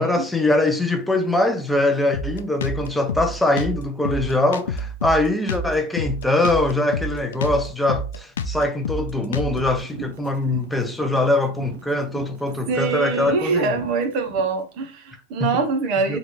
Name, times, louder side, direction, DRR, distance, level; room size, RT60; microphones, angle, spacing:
voice 1, 0.0-13.8 15.4-15.6 16.1-16.2, left 2 dB, 5° left, 0.4 m, -22 dB
Drum kit, 2.1-9.8, left 1 dB, 80° left, 0.4 m, -28 dB
sound 1, 9.7-14.6, right 5 dB, 70° right, 0.8 m, -41 dB
voice 2, 12.7-16.2, right 4 dB, 45° right, 0.7 m, -24 dB
3.1 x 2.4 x 3.0 m
hypercardioid pair, 130°, 0 cm